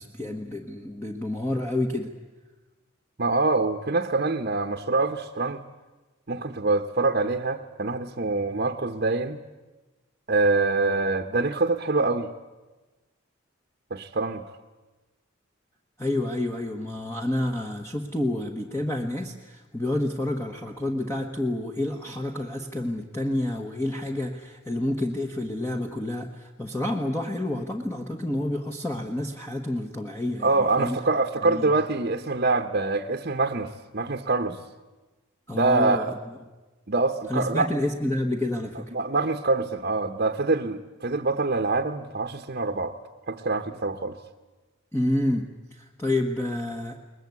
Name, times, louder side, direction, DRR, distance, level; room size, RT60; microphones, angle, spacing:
voice 1, 0.0-2.1 16.0-31.0 31.4-31.7 35.5-36.1 37.3-38.9 44.9-47.0, left 1 dB, 15° left, 2 dB, 1.3 m, -29 dB
voice 2, 3.2-5.6 6.3-9.4 10.3-12.3 13.9-14.4 30.4-34.6 35.5-36.2 36.9-37.7 38.9-42.9 43.3-44.1, right 3 dB, 50° right, 5 dB, 1.0 m, -25 dB
22.0 x 20.0 x 9.5 m, 1.2 s
head